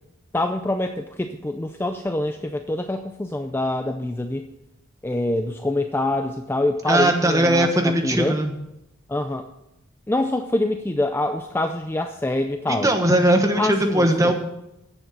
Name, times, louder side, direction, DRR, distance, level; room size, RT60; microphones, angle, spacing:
voice 1, 0.3-4.5 5.0-8.4 9.1-9.5 10.1-12.9 13.6-14.3, left 1 dB, 10° left, 7 dB, 0.4 m, -25 dB
voice 2, 6.9-8.5 12.7-14.3, right 1 dB, 15° right, 4 dB, 1.2 m, -19 dB
10.0 x 7.2 x 7.0 m, 0.89 s
head